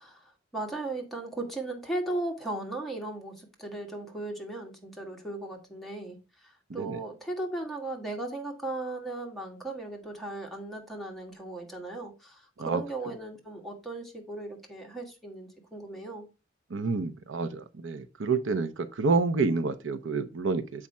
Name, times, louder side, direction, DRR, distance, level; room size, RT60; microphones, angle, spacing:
voice 1, 0.0-16.2, right 2 dB, ahead, 1.5 m, -37 dB
voice 2, 16.7-20.9, right 4 dB, 70° right, 0.6 m, -29 dB
7.3 x 4.8 x 4.2 m
head